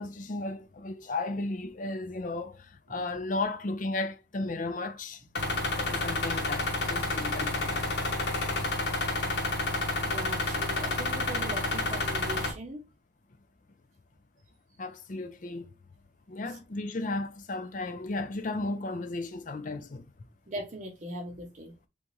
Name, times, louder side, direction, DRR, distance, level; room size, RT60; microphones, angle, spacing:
voice 1, 0.0-5.2 5.8-7.8 14.8-15.7 16.3-20.1, left 2 dB, 45° left, 0.5 m, -34 dB
sound 1, 5.4-12.5, left 2 dB, 65° left, 1.2 m, -30 dB
voice 2, 10.0-12.9 16.5-16.6 20.5-21.7, right 1 dB, 40° right, 0.7 m, -40 dB
4.0 x 3.5 x 3.1 m
head